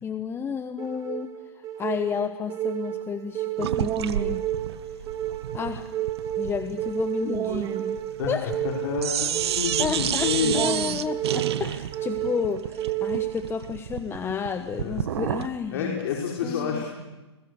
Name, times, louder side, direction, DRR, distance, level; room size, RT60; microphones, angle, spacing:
voice 1, 0.0-1.3 1.8-4.4 5.5-5.9 6.4-7.7 8.3-8.5 9.8-16.1 16.4-16.8, left 6 dB, 15° left, 9 dB, 1.1 m, -31 dB
sound 1, 0.8-13.8, right 11 dB, 25° right, 2.0 m, -31 dB
sound 2, 3.6-8.7 9.0-15.6, right 10 dB, 65° right, 1.3 m, -31 dB
voice 2, 8.6-10.7 14.8-15.0 15.7-16.9, left 6 dB, 55° left, 0 dB, 5.1 m, -28 dB
29.5 x 22.5 x 6.8 m, 1.1 s
hypercardioid pair, 120°, 15 cm